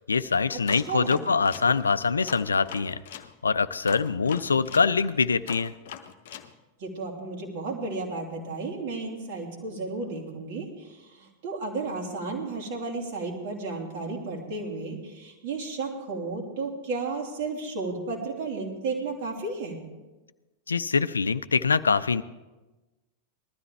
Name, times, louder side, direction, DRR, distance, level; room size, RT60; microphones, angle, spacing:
voice 1, 0.0-3.0 3.4-5.7 20.7-22.2, left 5 dB, 75° left, 15 dB, 0.4 m, -24 dB
voice 2, 0.5-1.3 6.8-19.8, right 3 dB, 55° right, 0 dB, 3.0 m, -33 dB
sound 1, 0.7-3.3 3.9-6.5, left 9 dB, 55° left, 0.8 m, -42 dB
19.5 x 13.0 x 3.4 m, 1.1 s
figure-of-eight pair, 90°, 0 cm